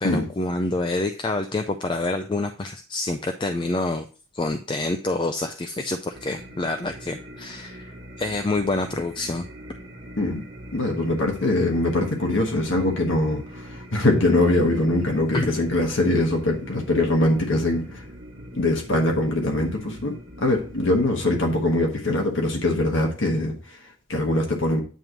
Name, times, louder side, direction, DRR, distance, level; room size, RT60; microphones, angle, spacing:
voice 1, 0.0-4.1 4.3-9.5 15.3-15.5, left 2 dB, 25° left, 7 dB, 0.4 m, -27 dB
sound 1, 6.1-21.6, equal, 55° right, 1.2 m, -42 dB
voice 2, 10.7-18.0 18.5-24.8, left 1 dB, 70° left, 1 dB, 1.4 m, -23 dB
9.1 x 3.1 x 5.1 m, 0.38 s
head